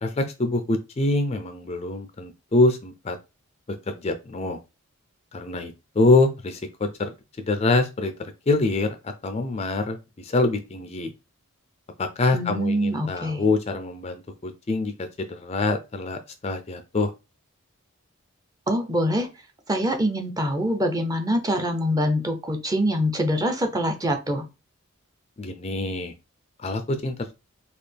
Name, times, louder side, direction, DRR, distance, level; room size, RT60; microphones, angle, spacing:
voice 1, 0.0-3.2 3.9-4.6 5.3-11.1 12.0-17.1 25.4-26.1 26.6-27.3, left 2 dB, 30° left, 7 dB, 0.4 m, -25 dB
voice 2, 12.3-13.4 18.7-19.3 19.7-24.5, equal, 15° right, 5 dB, 0.6 m, -24 dB
4.1 x 2.4 x 3.3 m, 0.27 s
head